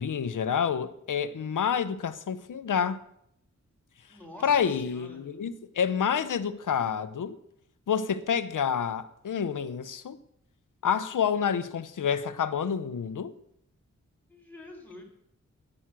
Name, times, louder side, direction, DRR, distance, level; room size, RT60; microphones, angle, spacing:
voice 1, 0.0-3.0 4.4-7.4 7.9-10.2 10.8-13.3, left 7 dB, 85° left, 0.9 m, -28 dB
voice 2, 4.1-5.2 14.3-15.0, left 1 dB, 5° left, 4.2 m, -47 dB
11.5 x 9.9 x 7.6 m
cardioid pair, 65°, 30 cm